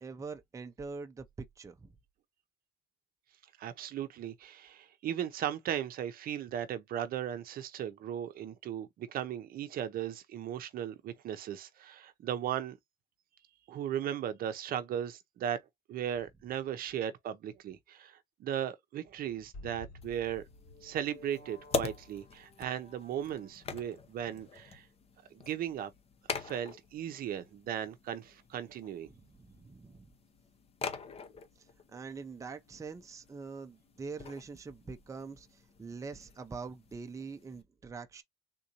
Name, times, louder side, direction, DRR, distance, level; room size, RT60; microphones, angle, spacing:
voice 1, 0.0-1.3 1.6-1.9 29.1-30.1 31.6-31.7 31.9-38.2, right 4 dB, 20° right, 0.5 m, -44 dB
voice 2, 3.6-12.8 13.7-15.6 15.9-20.4 20.8-24.9 25.3-25.9 26.4-29.1, right 10 dB, 60° right, 0.6 m, -37 dB
sound 1, 19.5-24.0, left 2 dB, 65° left, 2.5 m, -53 dB
sound 2, 20.0-37.6, left 5 dB, 35° left, 0.8 m, -44 dB
3.7 x 2.6 x 2.8 m
cardioid pair, 110°, 17 cm